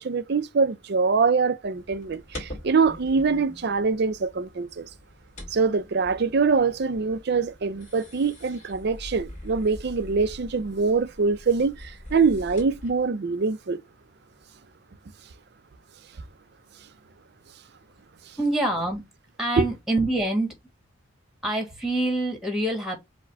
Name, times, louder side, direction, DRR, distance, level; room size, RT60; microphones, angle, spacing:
voice 1, 0.0-4.9 5.5-13.8 18.3-18.4 19.6-19.7, right 4 dB, 50° right, 0.5 m, -24 dB
sound 1, 1.6-13.1, left 1 dB, 35° left, 1.9 m, -44 dB
voice 2, 18.4-19.0 19.4-20.6 21.4-23.0, right 1 dB, ahead, 1.2 m, -25 dB
4.8 x 2.2 x 4.4 m
head